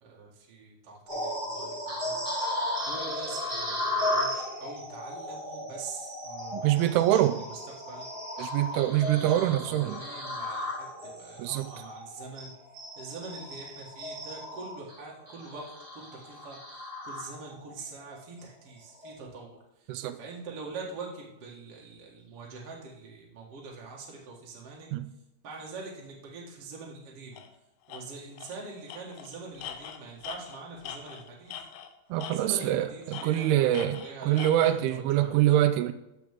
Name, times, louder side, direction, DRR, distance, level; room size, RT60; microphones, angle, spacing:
voice 1, 0.0-2.2 2.9-7.2 7.9-8.1 8.7-9.3 9.6-10.7 11.0-12.5 13.0-16.6 17.0-19.6 20.2-24.9 25.4-27.4 27.9-31.5 32.3-35.6, right 4 dB, 50° right, 1.9 m, -44 dB
sound 1, 1.1-17.7 18.2-18.4 18.9-19.1, left 1 dB, 25° right, 2.5 m, -35 dB
voice 2, 6.5-7.4 8.4-10.0 11.4-11.8 19.9-20.2 24.9-25.1 32.1-35.9, right 13 dB, 85° right, 2.3 m, -25 dB
Tools, 27.4-27.5 27.9-28.0 28.4-28.6 28.9-31.9 32.2-32.7 33.1-34.8, left 9 dB, 75° left, 2.6 m, -42 dB
13.0 x 5.9 x 3.6 m
omnidirectional pair, 5.0 m